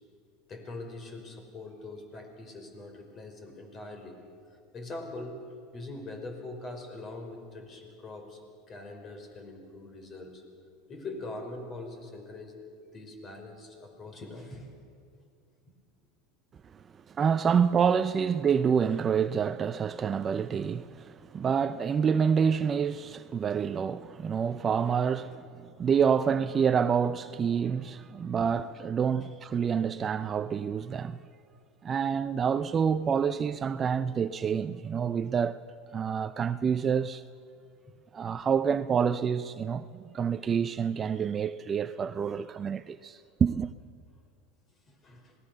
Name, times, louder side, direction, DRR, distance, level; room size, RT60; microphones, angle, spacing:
voice 1, 0.5-4.2 4.5-8.4 8.7-10.4 10.9-12.6 12.9-14.7 44.9-45.4, left 2 dB, 35° left, 5.3 m, -42 dB
voice 2, 17.1-31.2 31.8-35.6 35.9-37.2 38.1-39.8 40.1-43.7, right 7 dB, 30° right, 0.6 m, -27 dB
26.5 x 18.5 x 6.8 m
supercardioid pair, 105°, 0 cm